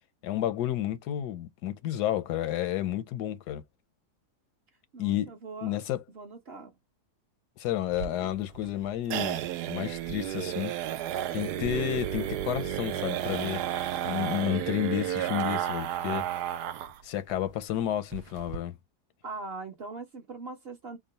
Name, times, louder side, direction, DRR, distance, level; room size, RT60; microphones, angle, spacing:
voice 1, 0.2-3.6 5.0-5.3 5.6-6.0 7.6-9.4 9.7-10.7 11.3-13.6 14.0-16.3 17.0-18.7, left 12 dB, 90° left, 1.2 m, -31 dB
voice 2, 4.9-6.7 8.2-8.4 19.2-21.0, right 3 dB, 45° right, 0.9 m, -42 dB
sound 1, 7.9-17.0 17.3-17.4 17.7-17.8 18.1-18.6, right 11 dB, 85° right, 1.1 m, -32 dB
3.7 x 2.1 x 3.9 m
omnidirectional pair, 1.7 m